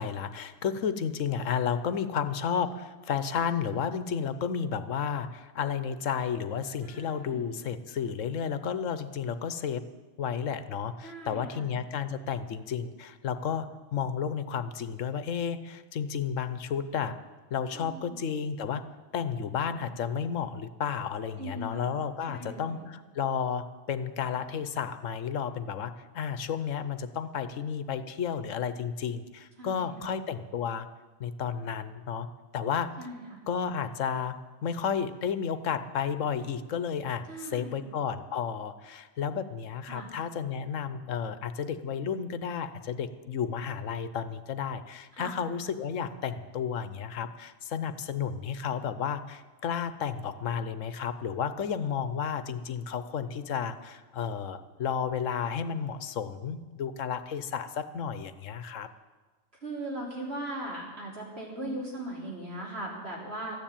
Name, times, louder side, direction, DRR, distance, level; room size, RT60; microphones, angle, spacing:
voice 1, 0.0-9.8 10.2-17.2 17.5-18.8 19.1-30.9 31.2-32.3 32.5-32.9 33.5-34.4 34.6-58.9, left 7 dB, 75° left, 12 dB, 1.2 m, -32 dB
voice 2, 6.8-7.5 11.0-11.7 17.7-18.2 21.4-21.9 22.3-22.8 29.6-30.1 33.0-33.4 37.3-37.8 39.9-40.1 45.1-45.3 59.6-63.6, right 1 dB, 50° right, -3 dB, 4.0 m, -39 dB
14.0 x 10.0 x 8.8 m, 1.3 s
omnidirectional pair, 1.3 m